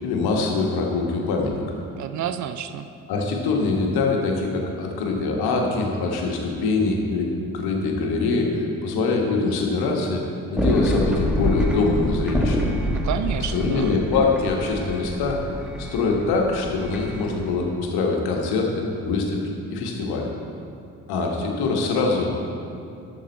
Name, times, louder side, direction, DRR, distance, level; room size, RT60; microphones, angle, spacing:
voice 1, 0.0-1.8 3.1-7.3 7.5-10.2 10.5-12.6 13.5-15.4 15.8-19.4 19.7-20.3 21.1-22.4, left 3 dB, 60° left, 1 dB, 1.6 m, -23 dB
voice 2, 1.9-2.9 12.8-14.0, right 9 dB, 45° right, 10 dB, 0.6 m, -29 dB
sound 1, 10.5-17.5, equal, ahead, 1.7 m, -27 dB
12.0 x 7.5 x 4.2 m, 2.6 s
figure-of-eight pair, 45°, 42 cm